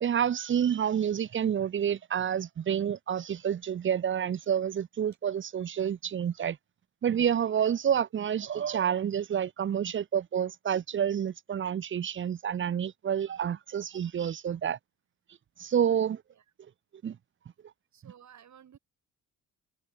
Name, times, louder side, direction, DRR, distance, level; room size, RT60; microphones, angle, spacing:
voice 1, 0.0-6.6 7.0-14.8 15.6-16.2 17.0-17.2, right 8 dB, 35° right, 0.7 m, -29 dB
voice 2, 17.9-18.8, right 9 dB, 55° right, 7.4 m, -54 dB
cardioid pair, 100°, 33 cm